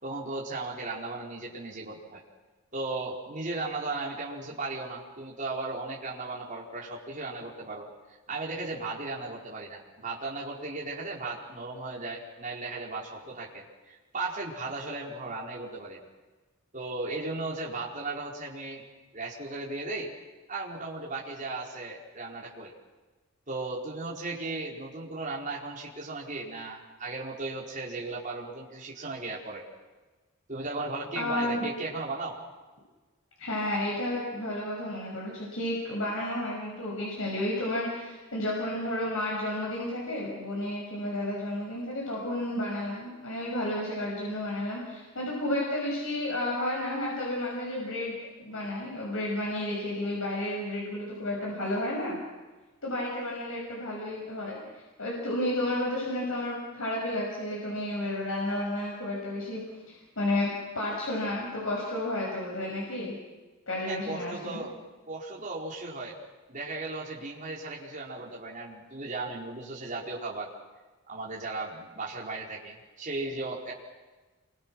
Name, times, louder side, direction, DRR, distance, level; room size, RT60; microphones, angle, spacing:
voice 1, 0.0-2.2 2.7-16.0 16.7-18.8 19.1-20.1 20.5-22.7 23.5-29.6 30.5-32.4 63.9-64.7 65.1-66.2 66.5-70.5 71.1-73.7, right 3 dB, 35° right, -3 dB, 4.6 m, -36 dB
voice 2, 31.2-31.7 33.4-52.2 52.8-54.6 55.0-59.6 59.9-63.1 63.7-64.6, left 1 dB, 70° left, -3 dB, 6.4 m, -32 dB
29.0 x 24.0 x 6.3 m, 1.2 s
head